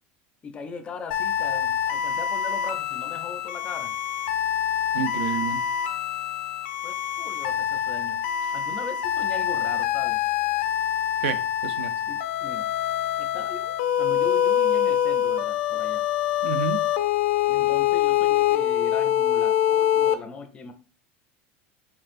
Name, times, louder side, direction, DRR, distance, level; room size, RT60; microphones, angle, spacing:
voice 1, 0.4-3.9 6.8-8.2 8.5-10.2 12.1-12.7 13.2-16.0 17.5-20.7, left 4 dB, 20° left, 8 dB, 0.4 m, -39 dB
sound 1, 1.1-20.2, left 10 dB, 85° left, 0.4 m, -25 dB
voice 2, 4.9-5.6 11.2-11.9 16.4-16.8, right 8 dB, 70° right, 11 dB, 0.5 m, -29 dB
4.3 x 4.3 x 2.5 m, 0.37 s
cardioid pair, 175°, 6 cm